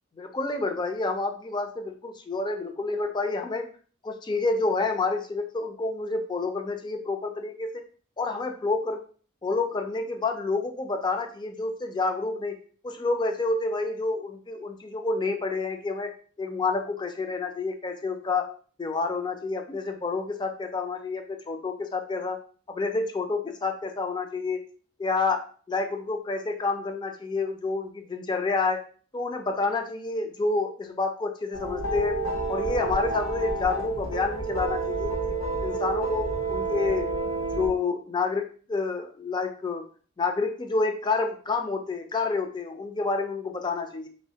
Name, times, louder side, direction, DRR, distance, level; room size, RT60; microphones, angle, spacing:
voice 1, 0.2-3.6 4.0-7.8 8.2-9.0 9.4-12.6 12.8-16.1 16.4-18.5 18.8-22.4 22.7-24.6 25.0-28.8 29.1-32.2 32.5-35.3 35.6-37.1 37.5-39.9 40.2-44.1, left 3 dB, 20° left, 5 dB, 0.4 m, -29 dB
sound 1, 31.5-37.7, right 3 dB, 75° left, 1.1 m, -29 dB
3.1 x 3.1 x 2.8 m, 0.42 s
head